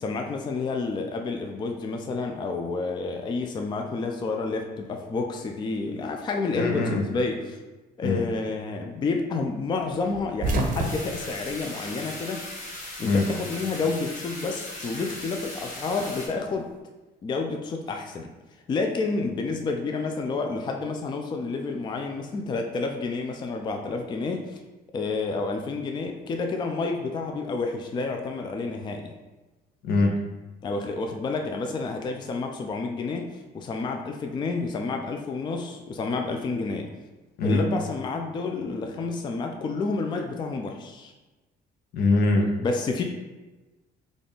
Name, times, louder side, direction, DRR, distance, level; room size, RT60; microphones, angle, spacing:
voice 1, 0.0-7.6 8.0-12.4 13.0-16.7 17.2-18.3 18.7-24.6 24.9-29.1 30.6-36.9 37.4-41.1 42.6-43.0, left 3 dB, 25° left, 3 dB, 0.3 m, -29 dB
voice 2, 6.5-7.0 8.0-8.2 13.0-13.3 29.8-30.2 37.4-37.7 41.9-42.6, left 2 dB, 70° left, 3 dB, 0.6 m, -22 dB
sound 1, 10.1-12.6 12.9-14.0 15.2-16.6, right 2 dB, 50° right, 0.6 m, -31 dB
sound 2, 10.8-16.3, left 1 dB, 50° left, 1.2 m, -38 dB
3.4 x 2.4 x 4.0 m, 1.2 s
cardioid pair, 110°, 17 cm